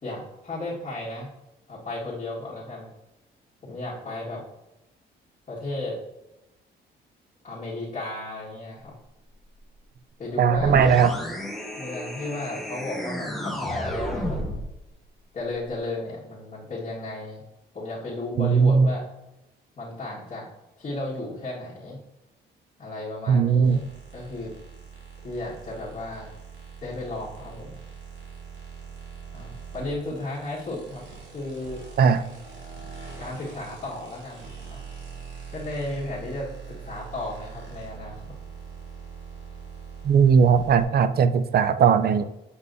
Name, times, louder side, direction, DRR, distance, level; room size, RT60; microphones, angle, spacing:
voice 1, 0.0-1.3 1.7-2.9 3.6-4.4 5.5-6.0 7.4-8.9 10.2-10.8 11.8-14.6 15.3-17.4 17.7-19.0 19.8-20.5 20.8-22.0 22.8-23.9 24.1-24.5 25.2-26.3 26.8-27.8 29.3-31.0 31.3-31.8 32.8-32.9 33.2-34.8 35.5-38.3, left 2 dB, 35° left, -8 dB, 1.8 m, -34 dB
voice 2, 10.4-11.1 18.4-18.9 23.3-23.8 32.0-32.2 40.0-42.3, right 6 dB, 50° right, 12 dB, 0.5 m, -18 dB
sound 1, 10.5-14.7, equal, ahead, 1.1 m, -32 dB
sound 2, 23.6-40.8, right 6 dB, 75° right, 2.3 m, -42 dB
7.8 x 5.3 x 2.7 m, 0.93 s
cardioid pair, 90°, 20 cm